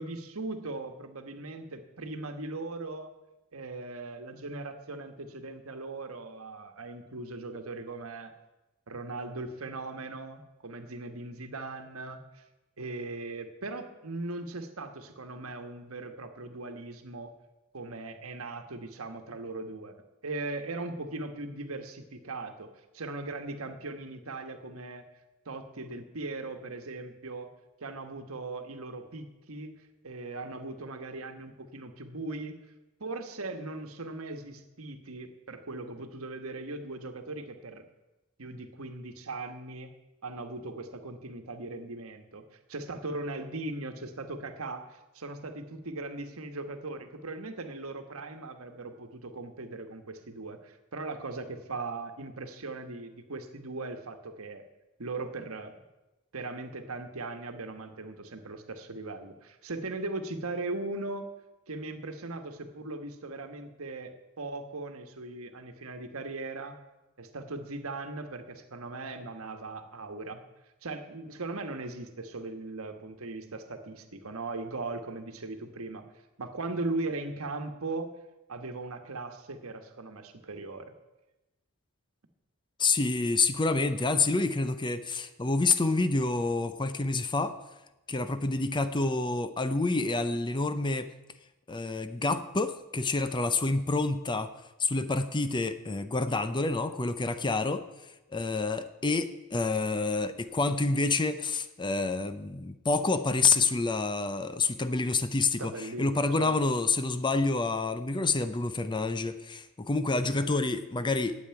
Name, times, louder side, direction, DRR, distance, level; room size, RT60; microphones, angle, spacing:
voice 1, 0.0-3.1 3.5-8.3 8.9-12.4 12.8-17.3 17.7-25.0 25.4-27.5 27.8-29.7 30.0-32.6 33.0-37.8 38.4-39.9 40.2-54.6 55.0-55.8 56.3-61.2 61.7-66.8 67.2-70.4 70.8-76.0 76.4-78.1 78.5-80.9 105.6-106.6, right 2 dB, 70° right, 7 dB, 1.3 m, -39 dB
voice 2, 82.8-87.5 88.1-91.1 91.7-94.5 94.8-97.8 98.3-111.4, left 3 dB, 20° left, 11 dB, 0.6 m, -28 dB
9.2 x 8.3 x 8.8 m, 1.0 s
head